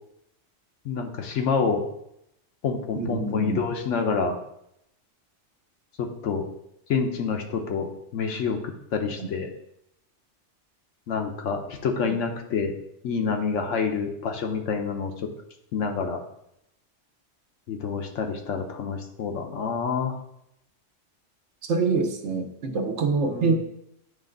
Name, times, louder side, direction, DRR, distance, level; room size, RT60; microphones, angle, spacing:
voice 1, 0.8-1.8 2.6-4.4 6.0-6.5 6.9-9.5 11.1-12.7 13.0-15.1 15.7-16.2 17.7-20.1 23.2-23.6, left 5 dB, 85° left, 4 dB, 1.1 m, -27 dB
voice 2, 3.0-3.6 9.2-9.3 12.0-12.1 21.7-23.6, right 4 dB, 70° right, 6 dB, 1.1 m, -25 dB
8.8 x 3.3 x 3.8 m, 0.80 s
omnidirectional pair, 1.2 m